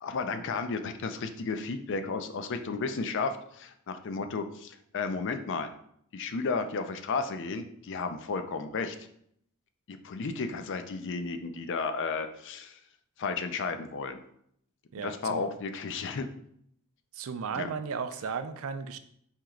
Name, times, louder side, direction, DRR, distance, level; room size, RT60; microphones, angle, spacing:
voice 1, 0.0-5.7 6.1-9.0 9.9-12.8 13.2-14.2 15.0-16.3 17.6-17.7, left 4 dB, 60° left, 9 dB, 0.5 m, -33 dB
voice 2, 14.9-15.5 17.1-19.0, right 6 dB, 70° right, 10 dB, 0.4 m, -35 dB
4.4 x 3.0 x 3.6 m, 0.69 s
head